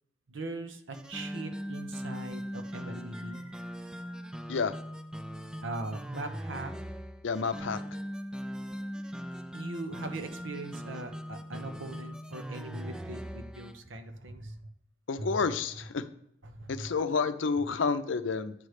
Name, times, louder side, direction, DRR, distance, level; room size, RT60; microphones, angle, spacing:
voice 1, 0.3-4.4 5.6-6.7 9.5-14.6 15.2-15.3 16.4-16.9 17.6-17.7, right 2 dB, 85° right, 6 dB, 0.9 m, -41 dB
sound 1, 0.9-13.8, equal, 5° right, 0.3 m, -40 dB
voice 2, 7.2-7.8 15.1-16.0 16.7-18.5, left 5 dB, 80° left, 11 dB, 0.5 m, -29 dB
9.3 x 3.2 x 6.5 m, 0.76 s
head